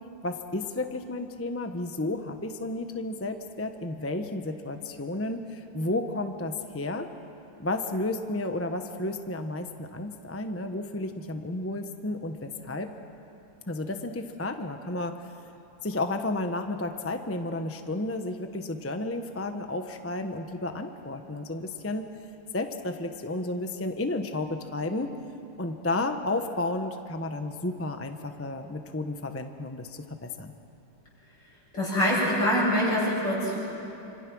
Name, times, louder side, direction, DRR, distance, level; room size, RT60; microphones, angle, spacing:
voice 1, 0.2-7.1 7.6-12.9 13.7-15.5 15.8-22.1 22.5-25.1 25.6-30.5, left 2 dB, 15° left, 6 dB, 0.4 m, -32 dB
voice 2, 31.7-33.6, equal, 55° left, -5 dB, 8.5 m, -24 dB
27.5 x 26.5 x 6.2 m, 3.0 s
omnidirectional pair, 2.3 m